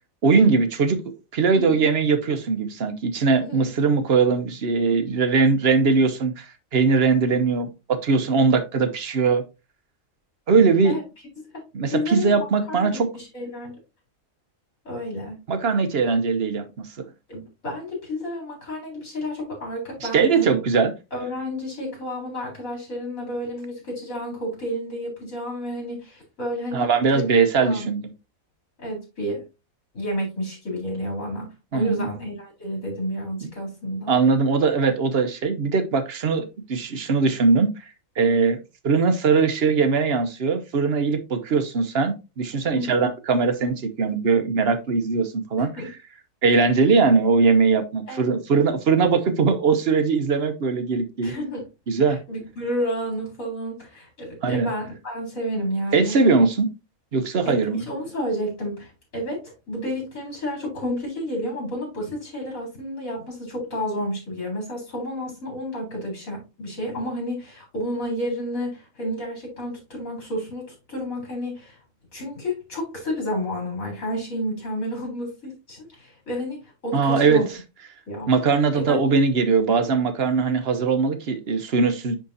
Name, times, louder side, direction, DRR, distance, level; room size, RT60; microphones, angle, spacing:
voice 1, 0.2-1.0 1.3-9.4 10.5-11.0 11.7-13.1 15.5-16.9 20.0-20.9 26.7-28.0 31.7-32.1 33.4-33.5 34.1-37.7 38.2-38.6 38.8-45.7 46.4-51.3 51.9-52.2 54.4-54.7 55.9-56.7 57.1-57.8 76.9-77.4 78.3-82.2, right 4 dB, 50° right, 1.0 m, -20 dB
voice 2, 1.5-1.9 3.4-3.7 10.8-11.0 11.4-13.8 14.8-15.4 17.3-20.6 21.1-27.9 28.8-29.4 29.9-34.2 42.7-43.0 45.6-45.9 48.1-48.3 51.2-51.7 52.1-56.2 57.4-71.8 72.1-77.5 78.1-78.4 78.7-79.0, equal, 70° left, 4.2 m, -31 dB
10.0 x 3.7 x 2.7 m
omnidirectional pair, 1.4 m